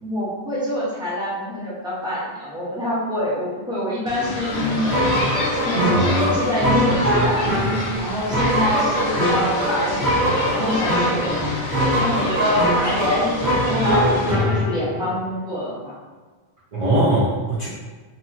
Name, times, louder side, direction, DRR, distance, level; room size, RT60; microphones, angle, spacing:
voice 1, 0.0-5.0 5.5-7.4 8.0-11.4 11.7-15.9, equal, 5° right, -8 dB, 0.7 m, -26 dB
sound 1, 4.1-14.3, left 2 dB, 85° left, 0.9 m, -30 dB
sound 2, 4.5-15.1, equal, 85° right, 1.1 m, -22 dB
voice 2, 5.8-6.3 16.7-17.7, right 1 dB, 45° right, -9 dB, 0.6 m, -21 dB
2.8 x 2.7 x 2.5 m, 1.4 s
omnidirectional pair, 1.1 m